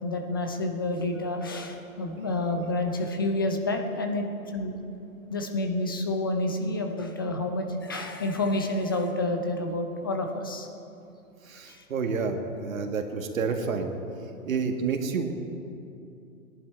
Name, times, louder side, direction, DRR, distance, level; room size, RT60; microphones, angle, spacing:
voice 1, 0.0-4.8 5.3-10.7 11.7-11.8, left 2 dB, 15° left, 4 dB, 0.4 m, -29 dB
voice 2, 11.5-13.9 14.5-15.3, right 5 dB, 65° right, 4 dB, 1.8 m, -29 dB
18.5 x 10.5 x 4.4 m, 2.7 s
hypercardioid pair, 140°, 44 cm